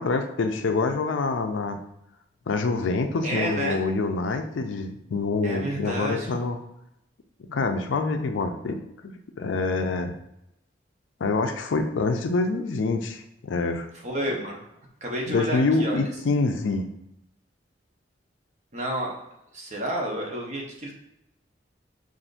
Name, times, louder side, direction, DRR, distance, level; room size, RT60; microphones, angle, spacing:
voice 1, 0.0-1.8 2.5-6.6 7.4-10.1 11.2-13.9 15.3-16.9, left 3 dB, 85° left, 6 dB, 0.5 m, -26 dB
voice 2, 3.2-3.9 5.4-6.4 14.0-14.6 15.0-16.0 18.7-19.1 19.5-20.9, right 1 dB, 40° right, -1 dB, 0.9 m, -30 dB
5.5 x 2.6 x 2.5 m, 0.83 s
head